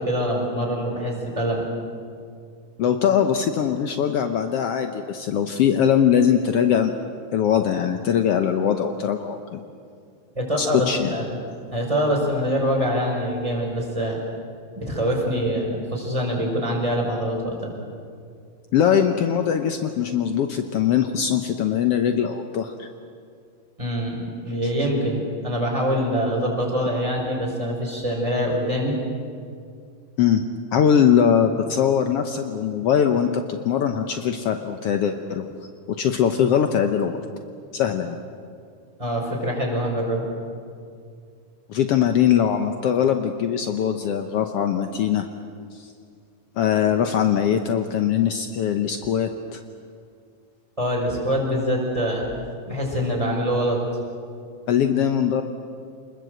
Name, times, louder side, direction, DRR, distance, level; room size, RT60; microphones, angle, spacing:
voice 1, 0.0-1.6 10.3-11.4 11.7-14.2 14.7-17.7 23.8-29.0 39.0-40.3 50.8-52.2 52.6-53.8, equal, 10° right, -1 dB, 4.8 m, -24 dB
voice 2, 2.8-6.9 7.3-9.6 10.6-11.2 18.7-22.9 30.2-30.4 30.7-35.4 35.9-37.2 37.7-38.2 41.7-45.3 45.7-45.9 46.6-49.6 54.7-55.4, left 8 dB, 85° left, 6 dB, 1.3 m, -21 dB
26.5 x 21.0 x 7.8 m, 2.2 s
omnidirectional pair, 4.0 m